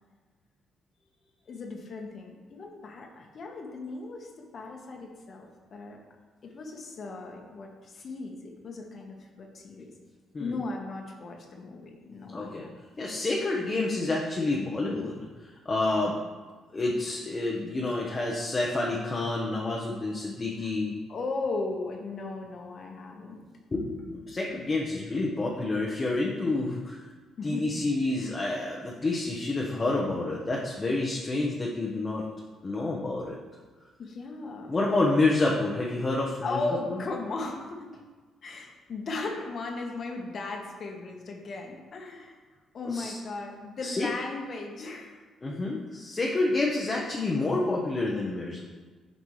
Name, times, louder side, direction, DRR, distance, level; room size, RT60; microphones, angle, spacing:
voice 1, 1.5-6.0 6.4-10.0 10.4-12.7 20.6-20.7 21.1-23.4 27.4-28.5 34.0-34.8 36.4-38.0 38.4-42.4 42.7-45.1 45.4-45.7, left 3 dB, 50° left, 1 dB, 1.3 m, -37 dB
voice 2, 12.3-12.7 13.0-15.2 15.6-16.2 16.7-20.9 23.7-27.0 27.4-32.2 32.6-33.3 34.7-36.6 36.9-37.0 42.9-43.1 43.8-44.1 45.4-48.6, left 2 dB, 30° left, -2 dB, 1.0 m, -28 dB
9.5 x 5.3 x 3.2 m, 1.4 s
cardioid pair, 90°, 0 cm